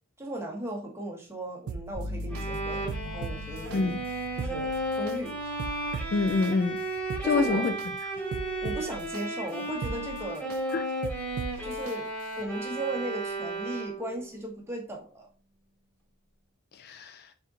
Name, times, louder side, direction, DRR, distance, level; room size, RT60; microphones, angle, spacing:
voice 1, 0.2-3.9 4.4-5.4 7.2-7.7 8.6-10.5 11.6-12.1 12.4-15.3, right 1 dB, 10° right, 1.0 m, -37 dB
sound 1, 1.7-2.4 2.9-3.8 4.2-5.2 5.6-6.5 7.0-7.9 8.3-9.2 9.7-10.6 11.0-11.9 12.4-12.5, right 5 dB, 80° right, 0.3 m, -38 dB
sound 2, 1.9-9.7, left 1 dB, 30° left, 1.5 m, -43 dB
Bowed string instrument, 2.3-14.2, right 1 dB, 10° left, 1.2 m, -34 dB
voice 2, 3.7-4.0 6.1-6.8 7.2-7.7 10.7-10.9 16.7-17.3, left 4 dB, 45° left, 0.3 m, -26 dB
4.3 x 3.6 x 2.5 m
head